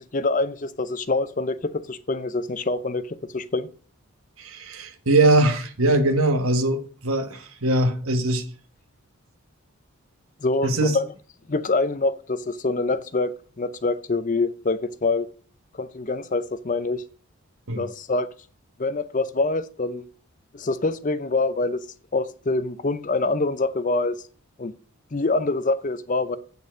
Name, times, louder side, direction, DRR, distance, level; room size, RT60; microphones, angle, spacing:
voice 1, 0.0-3.7 10.4-11.1 11.5-15.3 15.8-17.0 17.8-18.3 18.8-20.1 20.5-21.8 22.1-24.2 24.6-24.7 25.1-26.4, left 3 dB, 35° left, 0.6 m, -25 dB
voice 2, 4.4-8.4 10.6-11.0 17.7-17.9, right 2 dB, 70° right, 1.2 m, -21 dB
8.4 x 6.9 x 6.2 m
head